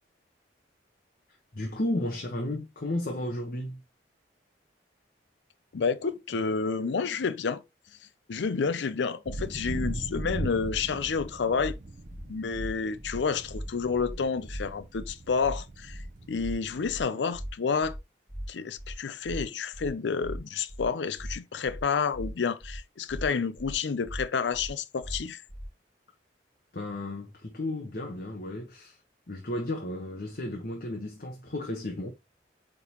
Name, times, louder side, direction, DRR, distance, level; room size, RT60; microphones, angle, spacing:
voice 1, 1.5-3.8 26.7-29.0 29.3-32.1, left 1 dB, 55° left, 1.2 m, -33 dB
voice 2, 5.7-7.6 8.3-11.8 12.3-16.0 16.3-18.0 18.5-25.4, left 5 dB, 75° left, 0.5 m, -29 dB
sound 1, 9.3-16.8, right 2 dB, 45° right, 0.6 m, -39 dB
sound 2, 10.6-10.8 11.1-11.2 11.6-11.7 12.0-12.2 12.5-12.7 13.0-13.2 13.5-13.6 14.0-14.1 14.4-14.6 14.9-15.1 15.4-15.6 15.9-16.0 16.4-16.5 16.8-17.0 17.3-17.5 17.8-18.0 18.3-18.4 18.8-18.9 19.2-19.4 19.7-19.9 20.2-20.4 20.7-20.8 21.2-21.3 21.6-21.8 22.1-22.3 22.6-22.8 23.1-23.2 23.6-23.7 24.0-24.2 24.5-24.7 25.0-25.2 25.5-25.6, equal, ahead, 2.7 m, -38 dB
8.2 x 3.8 x 3.0 m
head